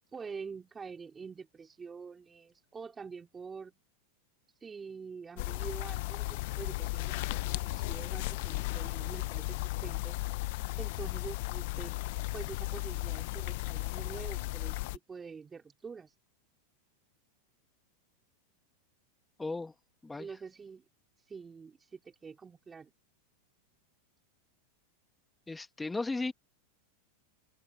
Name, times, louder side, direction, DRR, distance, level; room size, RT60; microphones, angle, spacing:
voice 1, 0.1-3.8 4.6-10.2 10.8-11.9 12.3-16.1 20.2-20.8 21.3-22.9, right 5 dB, 20° right, 3.2 m, -46 dB
sound 1, 5.4-15.0, left 21 dB, 60° left, 0.7 m, -35 dB
voice 2, 19.4-19.7 20.0-20.3 25.5-26.3, left 3 dB, 10° left, 1.8 m, -35 dB
hypercardioid pair, 105°, 0 cm